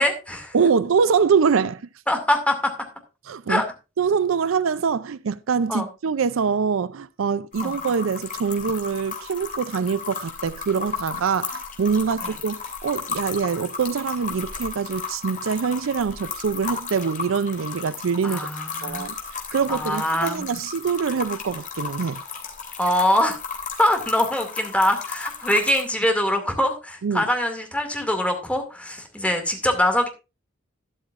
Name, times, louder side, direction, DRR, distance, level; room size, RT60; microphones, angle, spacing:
voice 1, 0.0-0.6 2.1-2.7 3.5-3.6 5.7-5.9 7.6-7.8 12.2-12.3 18.2-19.1 19.7-20.5 22.8-23.4 23.8-30.1, left 1 dB, 5° left, 2.3 m, -23 dB
voice 2, 0.5-1.8 3.3-3.6 4.0-18.5 18.8-19.2 19.5-22.2 27.0-27.2, right 6 dB, 75° right, 0.5 m, -24 dB
sound 1, 7.5-25.8, left 5 dB, 40° left, 3.0 m, -34 dB
13.0 x 11.5 x 2.5 m
head